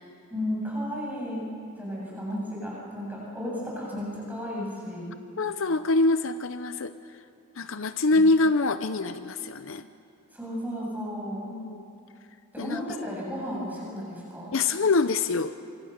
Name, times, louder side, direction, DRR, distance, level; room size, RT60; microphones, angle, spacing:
voice 1, 0.3-1.4 1.8-5.1 8.1-8.2 10.3-11.5 12.5-14.6, equal, 10° right, -4 dB, 7.5 m, -34 dB
voice 2, 5.4-6.9 7.6-9.9 11.5-11.9 12.6-12.8 14.5-15.5, left 3 dB, 60° left, 11 dB, 0.7 m, -25 dB
26.0 x 24.5 x 6.6 m, 2.7 s
head